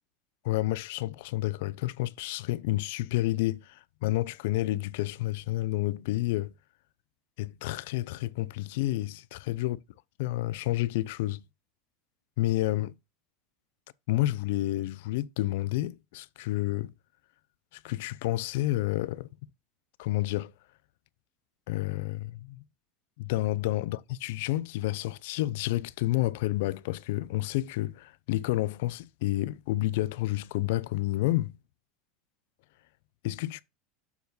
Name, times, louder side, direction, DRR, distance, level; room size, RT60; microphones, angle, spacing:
voice 1, 0.4-6.5 7.4-9.8 10.2-11.4 12.4-12.9 14.1-16.9 17.8-19.3 20.0-20.5 21.7-22.6 23.2-31.6 33.2-33.6, left 16 dB, 70° left, 0.5 m, -30 dB
6.7 x 4.7 x 3.9 m
supercardioid pair, 145°, 0 cm